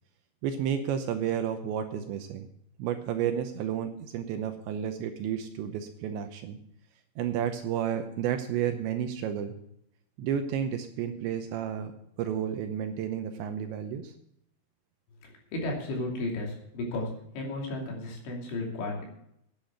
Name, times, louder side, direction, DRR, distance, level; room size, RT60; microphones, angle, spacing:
voice 1, 0.4-2.5 2.8-6.6 7.2-9.5 10.2-11.9 12.2-14.1, right 9 dB, 80° right, 7 dB, 2.8 m, -31 dB
voice 2, 15.2-17.1 17.3-19.1, left 2 dB, 70° left, -1 dB, 5.0 m, -34 dB
9.8 x 8.8 x 7.7 m, 0.73 s
omnidirectional pair, 5.7 m